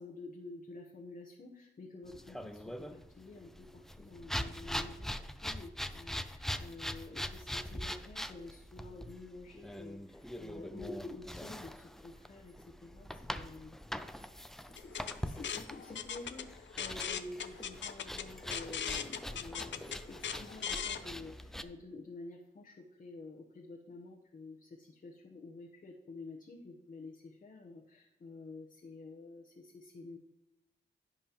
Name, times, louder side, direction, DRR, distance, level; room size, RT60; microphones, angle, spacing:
voice 1, 0.0-13.8 14.7-15.0 15.2-30.2, left 3 dB, 45° left, 0 dB, 1.0 m, -49 dB
sound 1, 2.0-21.6, equal, ahead, 0.4 m, -43 dB
sound 2, 14.8-21.0, left 8 dB, 70° left, 0.6 m, -40 dB
16.0 x 5.4 x 3.0 m, 0.98 s
wide cardioid pair, 110°, 20 cm